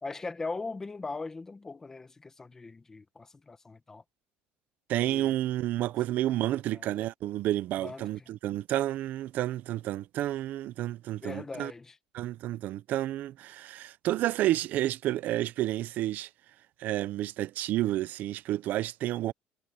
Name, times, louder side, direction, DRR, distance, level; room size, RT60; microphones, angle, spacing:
voice 1, 0.0-4.0 5.0-5.3 6.7-7.0 7.8-8.3 11.2-12.0, left 3 dB, 10° left, 1.3 m, -40 dB
voice 2, 4.9-11.7 12.1-16.3 16.8-19.3, right 14 dB, 45° right, 0.5 m, -30 dB
cardioid pair, 180°, 4 cm